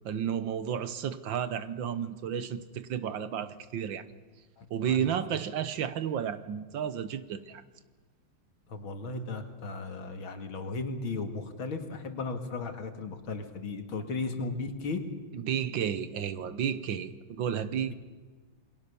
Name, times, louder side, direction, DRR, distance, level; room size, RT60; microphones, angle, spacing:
voice 1, 0.1-4.0 4.7-7.6 15.3-17.9, right 8 dB, 65° right, 13 dB, 1.7 m, -32 dB
voice 2, 4.6-5.4 8.7-15.0, left 3 dB, 75° left, 6 dB, 2.8 m, -36 dB
28.5 x 22.0 x 6.9 m, 1.3 s
omnidirectional pair, 2.3 m